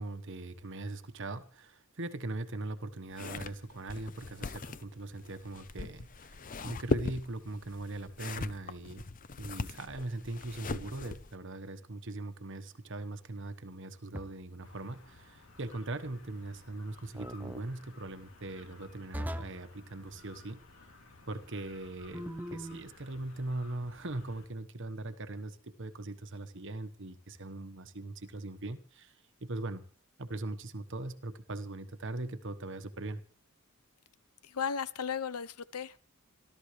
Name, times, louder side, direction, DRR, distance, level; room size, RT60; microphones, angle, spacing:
voice 1, 0.0-9.1 9.4-20.6 21.3-29.2 29.4-29.8 30.2-33.2, right 2 dB, 55° right, 9 dB, 1.2 m, -40 dB
sound 1, 3.1-11.4, left 3 dB, 40° left, 0.6 m, -39 dB
sound 2, 14.1-14.6 17.1-17.6 19.1-19.7 22.1-22.9, equal, 10° right, 0.6 m, -40 dB
sound 3, 14.6-24.5, left 3 dB, 60° left, 3.5 m, -57 dB
voice 2, 34.4-36.0, left 6 dB, 90° left, 16 dB, 0.8 m, -35 dB
27.0 x 13.0 x 3.2 m, 0.40 s
head